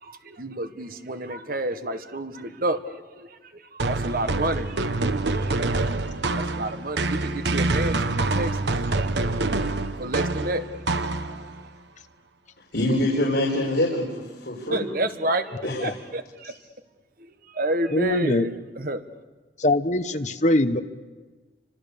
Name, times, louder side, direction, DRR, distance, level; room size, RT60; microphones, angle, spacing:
voice 1, 0.0-4.9 5.3-8.7 8.9-9.1 9.6-9.7 10.0-10.8 11.2-11.3 14.7-16.6 17.5-19.0, right 1 dB, 55° right, 9 dB, 1.5 m, -30 dB
sound 1, 3.8-11.6, right 2 dB, 75° right, 1.1 m, -26 dB
voice 2, 12.7-14.9 15.6-15.9, left 1 dB, 70° left, -3 dB, 4.6 m, -25 dB
voice 3, 17.9-18.5 19.6-20.8, left 1 dB, 40° left, 9 dB, 1.1 m, -23 dB
29.5 x 25.5 x 6.9 m, 1.3 s
head